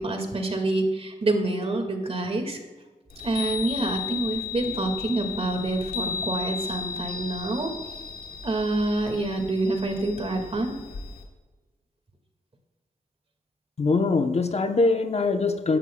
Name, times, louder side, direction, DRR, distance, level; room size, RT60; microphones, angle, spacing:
voice 1, 0.0-2.6 3.2-7.7 8.4-10.8, right 2 dB, 40° right, 4 dB, 2.0 m, -27 dB
Chime, 3.1-11.2, left 6 dB, 85° left, 1.7 m, -35 dB
voice 2, 13.8-15.8, left 3 dB, 45° left, 6 dB, 0.8 m, -22 dB
15.5 x 11.0 x 2.3 m, 1.3 s
cardioid pair, 60°, 15 cm